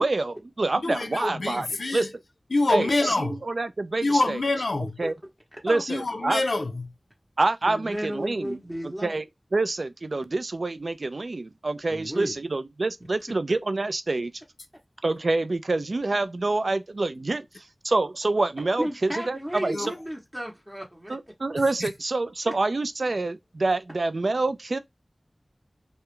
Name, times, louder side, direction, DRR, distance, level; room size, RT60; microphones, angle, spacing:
voice 1, 0.0-2.1 2.7-4.4 5.0-5.1 5.6-6.4 7.4-8.6 9.0-9.2 9.5-14.3 15.0-17.4 17.8-19.9 21.1-24.8, right 2 dB, 75° right, 0.3 m, -27 dB
voice 2, 0.8-2.1 2.5-3.4 4.0-5.0 5.9-6.9 19.7-19.9 21.8-21.9, left 2 dB, 90° left, 0.4 m, -26 dB
voice 3, 7.7-9.2 11.9-12.4 18.8-21.2, equal, 15° right, 0.7 m, -33 dB
2.3 x 2.0 x 2.9 m
wide cardioid pair, 40°, 0 cm